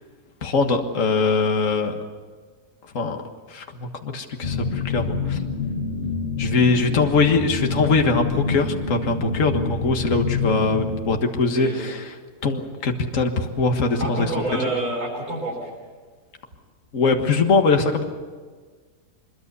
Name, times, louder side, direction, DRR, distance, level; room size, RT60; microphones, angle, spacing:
voice 1, 0.4-2.0 2.9-3.2 3.5-5.4 6.4-12.1 12.4-14.3 14.6-14.7 16.9-18.0, left 4 dB, 55° left, 4 dB, 1.9 m, -22 dB
sound 1, 4.4-11.2, left 4 dB, 40° left, 2.0 m, -27 dB
voice 2, 14.0-15.7, right 2 dB, 85° right, -4 dB, 6.3 m, -27 dB
24.5 x 22.5 x 6.9 m, 1.5 s
omnidirectional pair, 1.6 m